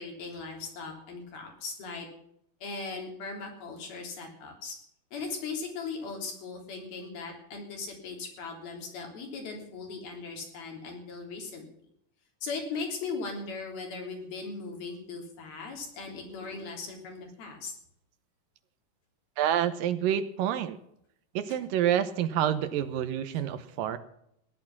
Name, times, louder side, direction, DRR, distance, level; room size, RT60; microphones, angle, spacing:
voice 1, 0.0-2.1 2.6-4.8 5.1-11.6 12.4-17.7, left 4 dB, 80° left, 1 dB, 5.3 m, -38 dB
voice 2, 19.4-20.8 21.4-24.0, right 10 dB, 75° right, 12 dB, 2.4 m, -28 dB
16.0 x 11.0 x 6.0 m, 0.74 s
omnidirectional pair, 4.2 m